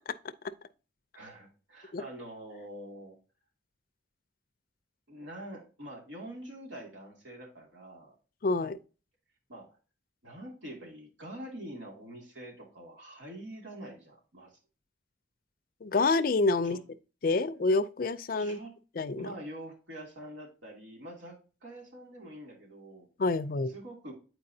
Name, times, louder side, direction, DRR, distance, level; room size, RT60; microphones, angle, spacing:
voice 1, 1.1-3.2 5.1-8.2 9.5-9.8 10.2-14.6 16.6-16.8 18.4-18.7 19.2-23.1 23.7-24.1, right 1 dB, 90° right, 2.3 m, -45 dB
voice 2, 8.4-8.8 15.8-16.8 17.2-18.6 19.0-19.3 23.2-23.7, left 3 dB, 50° left, 0.4 m, -27 dB
8.6 x 4.6 x 2.7 m
head